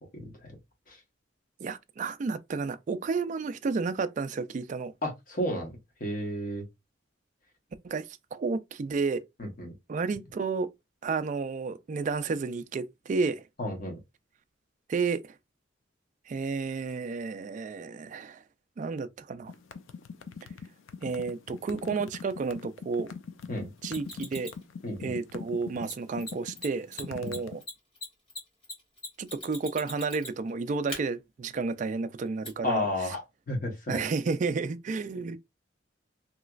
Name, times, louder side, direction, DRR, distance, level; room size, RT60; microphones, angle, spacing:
voice 1, 0.1-0.5 0.9-1.0 5.0-6.6 9.4-9.7 13.6-14.0 23.5-23.7 24.8-25.1 27.2-27.4 32.6-34.0, left 1 dB, 45° left, 1.2 m, -32 dB
voice 2, 1.6-4.9 7.8-8.1 8.3-9.2 9.9-10.7 11.0-13.5 14.9-15.3 16.3-18.4 18.8-19.5 21.0-23.1 23.8-24.5 25.0-27.6 29.2-32.9 33.9-35.4, right 4 dB, 40° right, 0.3 m, -31 dB
sound 1, 19.5-27.6, left 5 dB, 85° left, 0.4 m, -42 dB
Mechanisms, 23.9-24.6 25.8-25.9 26.2-26.3 26.6-26.7 26.9-30.5 30.9-31.0 32.4-32.5, left 1 dB, 30° left, 1.8 m, -39 dB
3.1 x 2.9 x 2.4 m
head